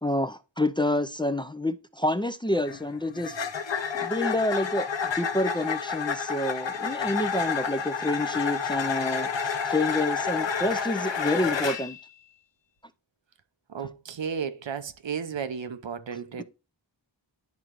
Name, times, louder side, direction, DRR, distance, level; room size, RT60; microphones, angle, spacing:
voice 1, 0.0-3.4 3.9-12.0, left 1 dB, 10° left, 0.4 m, -28 dB
sound 1, 2.5-12.0, left 6 dB, 85° left, 0.8 m, -30 dB
voice 2, 13.7-16.4, right 7 dB, 85° right, 0.7 m, -33 dB
10.5 x 3.8 x 2.9 m
wide cardioid pair, 55°, 43 cm